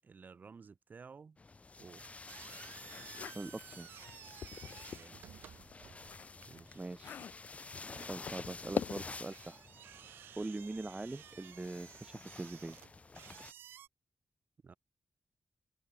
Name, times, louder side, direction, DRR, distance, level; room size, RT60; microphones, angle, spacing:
voice 1, 0.0-1.4 1.8-2.1 4.9-5.3 6.5-6.8 14.6-14.7, right 5 dB, 55° right, 2.4 m, -54 dB
sound 1, 1.4-13.5, left 3 dB, 40° left, 1.3 m, -51 dB
sound 2, 2.0-13.9, right 11 dB, 85° right, 0.5 m, -56 dB
sound 3, 2.8-5.1 5.5-9.3, left 8 dB, 70° left, 0.4 m, -44 dB
voice 2, 3.3-3.9 6.7-7.3 8.1-9.7 10.4-12.8, right 2 dB, 25° right, 0.7 m, -42 dB
supercardioid pair, 40°, 4 cm